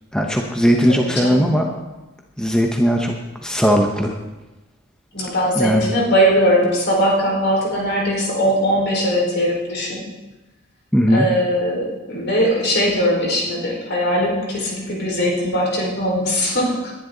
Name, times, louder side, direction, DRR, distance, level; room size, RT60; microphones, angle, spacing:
voice 1, 0.1-1.7 2.4-3.1 3.4-4.1 5.6-5.8 10.9-11.3, equal, 5° left, 1 dB, 0.9 m, -18 dB
voice 2, 0.9-1.5 5.1-10.1 11.1-16.9, equal, 55° left, -2 dB, 4.8 m, -20 dB
20.5 x 11.0 x 3.9 m, 1.1 s
head